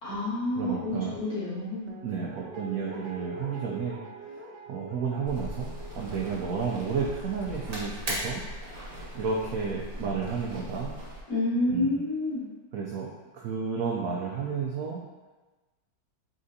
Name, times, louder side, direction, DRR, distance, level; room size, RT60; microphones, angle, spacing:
voice 1, 0.0-1.9 11.3-12.4, left 2 dB, 50° left, -10 dB, 2.0 m, -29 dB
voice 2, 0.6-1.1 2.0-4.4 4.7-8.4 9.1-11.0 11.7-12.0 12.7-15.0, right 5 dB, 90° right, -3 dB, 0.7 m, -32 dB
Guitar, 1.9-8.9 9.2-9.3, right 3 dB, 70° right, 1.2 m, -45 dB
sound 1, 5.3-11.2, equal, 40° right, 0.9 m, -38 dB
4.3 x 3.7 x 2.7 m, 1.2 s
omnidirectional pair, 2.0 m